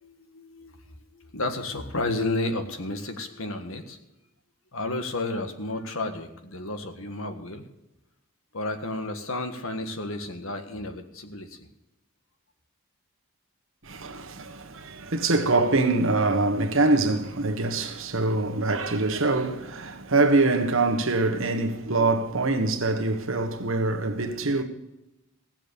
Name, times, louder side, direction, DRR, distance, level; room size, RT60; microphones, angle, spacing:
voice 1, 0.0-4.0 4.7-7.6 8.5-11.7, left 2 dB, 65° left, 1.6 m, -32 dB
voice 2, 13.8-24.6, right 3 dB, 60° right, 1.5 m, -24 dB
16.5 x 7.5 x 6.8 m
head